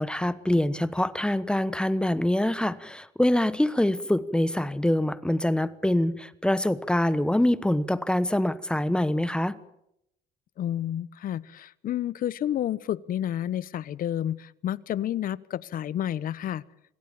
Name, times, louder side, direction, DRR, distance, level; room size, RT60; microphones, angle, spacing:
voice 1, 0.0-9.6, left 1 dB, 5° left, 15 dB, 1.1 m, -25 dB
voice 2, 10.6-16.6, left 11 dB, 55° left, 18 dB, 1.0 m, -30 dB
26.5 x 17.5 x 8.7 m, 0.82 s
cardioid pair, 110°, 17 cm